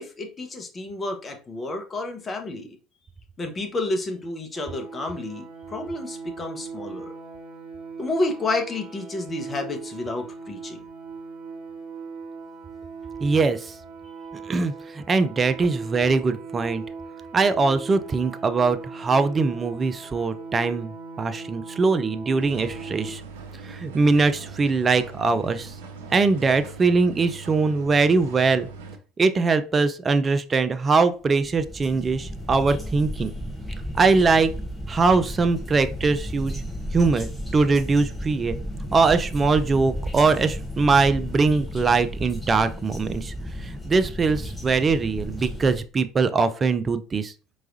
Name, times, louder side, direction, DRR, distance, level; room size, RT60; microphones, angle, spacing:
voice 1, 0.0-2.8 3.4-7.1 8.0-10.8, left 2 dB, 25° left, 3 dB, 1.1 m, -30 dB
sound 1, 4.5-23.1, right 4 dB, 50° right, 1.6 m, -39 dB
voice 2, 13.2-13.7 14.5-16.8 17.3-23.2 23.6-25.7 26.1-28.7 29.2-33.3 33.9-34.5 34.9-36.6 36.9-38.6 38.9-43.3 43.6-47.3, right 4 dB, 30° right, 10 dB, 0.5 m, -22 dB
sound 2, 22.4-29.0, right 4 dB, 70° right, 0.7 m, -41 dB
sound 3, 31.4-45.8, equal, ahead, 1.1 m, -34 dB
4.6 x 3.1 x 2.7 m, 0.35 s
figure-of-eight pair, 65°, 0 cm